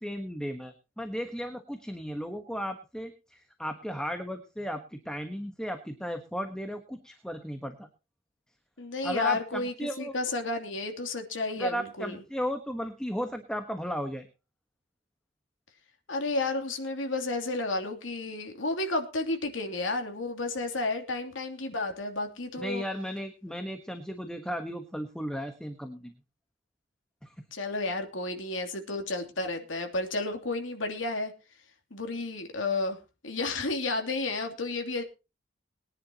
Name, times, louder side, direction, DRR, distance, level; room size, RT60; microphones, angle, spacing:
voice 1, 0.0-7.9 9.0-10.1 11.6-14.2 22.6-26.1 27.2-27.3, equal, 5° left, 6 dB, 1.3 m, -35 dB
voice 2, 8.8-12.2 16.1-22.8 27.5-31.3 31.9-33.0 33.2-35.0, left 2 dB, 80° left, 4 dB, 2.9 m, -32 dB
22.5 x 10.5 x 2.9 m, 0.30 s
head